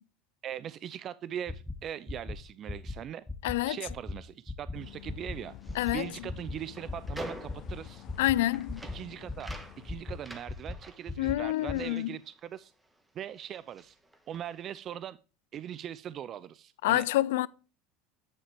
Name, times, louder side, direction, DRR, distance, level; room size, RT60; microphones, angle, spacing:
voice 1, 0.4-3.2 3.7-5.5 5.9-8.1 8.9-12.7 13.2-14.0 14.3-15.2 15.5-17.0, right 10 dB, 45° right, 0.4 m, -40 dB
sound 1, 1.5-1.7 2.1-2.4 2.7-2.9 3.3-3.6 3.9-4.1 4.5-4.7 5.1-5.4 5.7-5.9 6.3-6.5 6.9-7.1 7.5-7.7 8.1-8.3 8.7-9.0 9.3-9.6 9.9-10.1 10.5-10.8 11.1-11.4 11.7-11.8, left 3 dB, 10° left, 0.9 m, -36 dB
voice 2, 3.4-3.8 5.8-6.1 8.2-8.8 11.2-12.2 16.8-17.5, left 16 dB, 80° left, 0.3 m, -27 dB
sound 2, 4.7-10.3, left 12 dB, 50° left, 0.7 m, -50 dB
sound 3, 5.5-13.0 13.3-14.7, right 1 dB, 10° right, 1.5 m, -48 dB
9.8 x 5.7 x 3.4 m
supercardioid pair, 95°, 0 cm